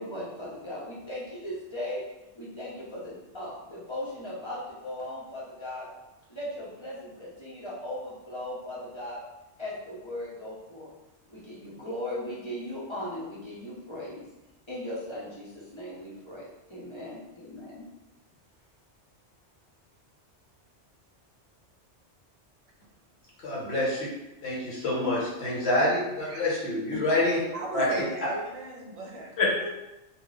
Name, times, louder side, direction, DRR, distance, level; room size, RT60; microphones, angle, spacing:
voice 1, 0.0-2.0 2.4-5.9 6.3-9.2 9.6-10.9 11.3-14.2 14.7-17.8, left 1 dB, 30° left, -7 dB, 0.7 m, -38 dB
voice 2, 23.4-24.1 24.4-27.4 27.7-28.3 29.4-29.5, left 1 dB, 65° left, -5 dB, 1.3 m, -27 dB
voice 3, 27.5-29.8, right 2 dB, 45° right, -1 dB, 0.5 m, -38 dB
2.5 x 2.1 x 3.9 m, 0.97 s
omnidirectional pair, 1.2 m